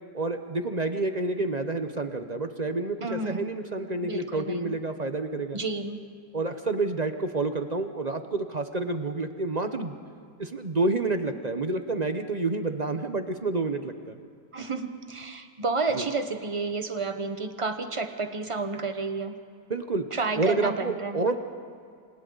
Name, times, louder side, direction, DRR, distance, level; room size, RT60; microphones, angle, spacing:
voice 1, 0.1-5.6 6.3-10.0 10.4-14.2 15.9-16.1 19.7-20.0 20.4-21.4, right 3 dB, 40° right, 7 dB, 0.6 m, -29 dB
voice 2, 3.0-3.5 4.0-4.8 5.5-6.0 14.5-19.3 20.1-21.2, right 3 dB, 20° right, 7 dB, 1.0 m, -31 dB
29.0 x 26.0 x 4.0 m, 2.2 s
omnidirectional pair, 1.9 m